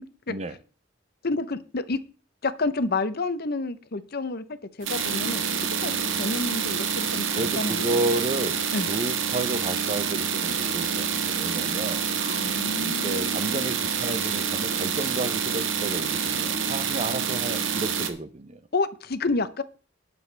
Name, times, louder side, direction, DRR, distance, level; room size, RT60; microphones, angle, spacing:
voice 1, 0.3-0.6 7.3-8.6 8.9-12.0 12.8-18.6, right 2 dB, 35° right, 0.7 m, -31 dB
voice 2, 1.2-2.0 2.4-7.8 8.7-8.9 12.2-13.7 18.7-19.6, left 3 dB, 55° left, 0.8 m, -30 dB
sound 1, 4.8-18.1, right 7 dB, 80° right, 1.5 m, -27 dB
19.5 x 7.0 x 3.4 m
head